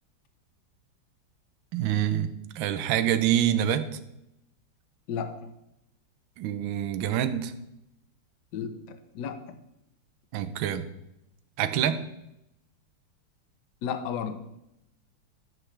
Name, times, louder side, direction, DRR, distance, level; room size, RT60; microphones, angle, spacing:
voice 1, 1.7-3.8 6.4-7.5 10.3-10.9 11.6-12.0, right 10 dB, 70° right, 10 dB, 1.4 m, -26 dB
voice 2, 5.1-5.4 8.5-8.8 9.1-9.5 13.8-14.4, left 7 dB, 60° left, 9 dB, 1.2 m, -32 dB
11.5 x 8.0 x 3.3 m, 0.85 s
omnidirectional pair, 2.4 m